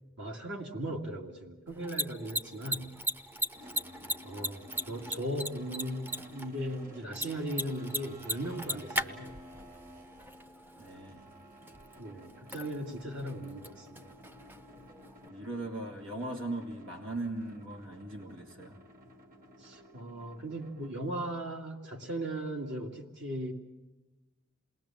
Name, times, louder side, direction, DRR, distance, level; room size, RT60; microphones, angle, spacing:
voice 1, 0.2-2.9 4.2-9.4 12.0-14.1 19.6-23.5, right 1 dB, 60° right, 1 dB, 2.3 m, -38 dB
Mechanisms, 1.7-15.3, equal, 10° right, 0.7 m, -39 dB
sound 1, 3.5-21.5, left 1 dB, 45° right, 2.3 m, -53 dB
voice 2, 10.8-11.2 15.3-18.8, right 2 dB, 80° right, 3 dB, 2.5 m, -39 dB
28.0 x 21.0 x 7.4 m, 1.1 s
head